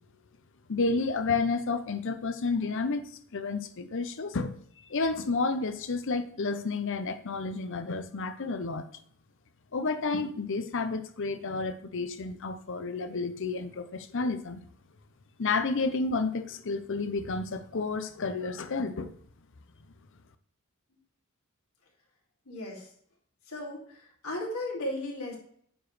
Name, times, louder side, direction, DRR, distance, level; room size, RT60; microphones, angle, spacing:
voice 1, 0.7-4.6 4.9-8.9 9.7-14.6 15.4-19.1, left 3 dB, 60° left, 10 dB, 0.7 m, -31 dB
voice 2, 22.5-22.9 23.4-25.4, left 1 dB, 85° left, -2 dB, 2.6 m, -36 dB
8.8 x 5.0 x 3.2 m, 0.63 s
head